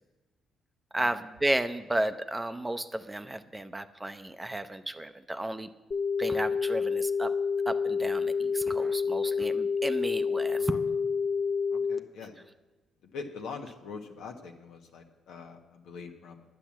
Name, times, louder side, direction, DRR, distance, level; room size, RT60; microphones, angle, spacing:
voice 1, 0.9-5.7 6.2-7.3 7.7-10.8, right 1 dB, 15° right, 10 dB, 0.6 m, -33 dB
sound 1, 5.9-12.0, left 5 dB, 40° left, 0.7 m, -28 dB
voice 2, 11.7-12.3 13.1-16.4, left 5 dB, 80° left, 4 dB, 1.3 m, -43 dB
9.9 x 9.1 x 7.4 m, 1.2 s
cardioid pair, 85°, 0 cm